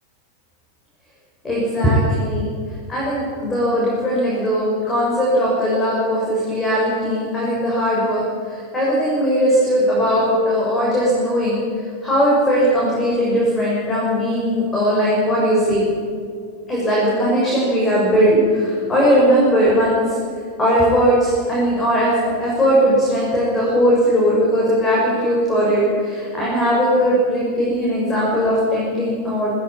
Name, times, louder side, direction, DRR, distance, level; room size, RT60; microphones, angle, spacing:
voice 1, 1.4-2.5 2.9-15.9 16.7-20.2 20.6-22.1 22.4-29.5, equal, 15° left, -5 dB, 6.5 m, -18 dB
18.5 x 15.5 x 8.9 m, 2.3 s
figure-of-eight pair, 90°, 0 cm